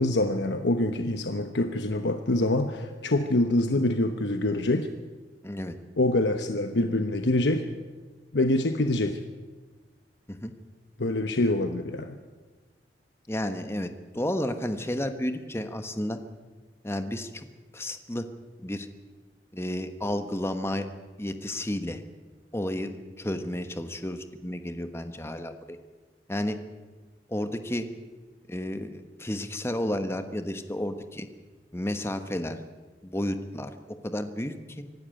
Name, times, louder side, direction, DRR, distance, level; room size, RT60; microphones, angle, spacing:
voice 1, 0.0-4.9 6.0-7.6 8.3-9.2 11.0-12.2, left 2 dB, 85° left, 7 dB, 1.1 m, -25 dB
voice 2, 5.4-5.7 10.3-10.5 13.3-16.2 16.8-17.4 17.7-18.3 18.6-18.9 19.5-20.9 21.2-22.0 22.5-25.8 26.3-26.6 27.3-27.9 28.5-31.3 31.7-32.6 33.0-33.7 34.0-34.8, left 1 dB, 15° left, 8 dB, 1.2 m, -32 dB
24.5 x 12.0 x 9.0 m, 1.3 s
head